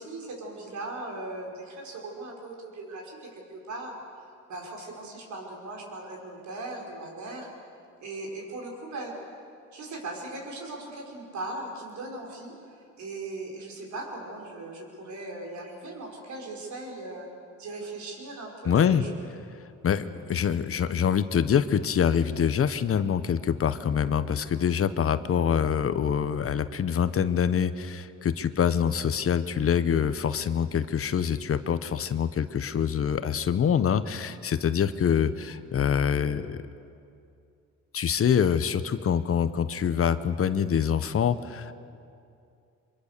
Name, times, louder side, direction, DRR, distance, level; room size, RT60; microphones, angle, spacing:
voice 1, 0.0-4.0 4.5-7.5 8.0-9.1 9.7-17.3 17.6-19.1, right 2 dB, 70° right, 0 dB, 5.5 m, -39 dB
voice 2, 18.6-19.0 19.8-36.6 37.9-41.7, left 8 dB, 50° left, 13 dB, 1.0 m, -25 dB
24.5 x 23.0 x 6.8 m, 2.5 s
cardioid pair, 90°, 30 cm